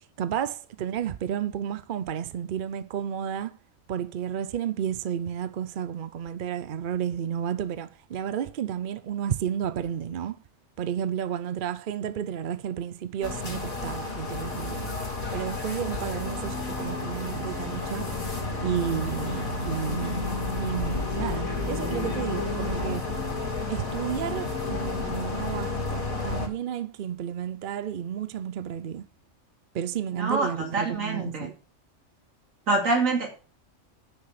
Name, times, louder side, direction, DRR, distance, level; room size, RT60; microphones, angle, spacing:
voice 1, 0.2-3.5 3.9-10.4 10.8-14.9 15.3-18.1 18.6-20.3 20.6-23.1 23.7-29.0 29.7-31.5, right 9 dB, 55° right, 0.5 m, -32 dB
sound 1, 13.2-26.5, left 3 dB, 85° left, 3.3 m, -31 dB
voice 2, 30.1-31.5 32.7-33.3, right 3 dB, 75° right, 2.9 m, -26 dB
9.6 x 6.4 x 5.7 m
omnidirectional pair, 1.4 m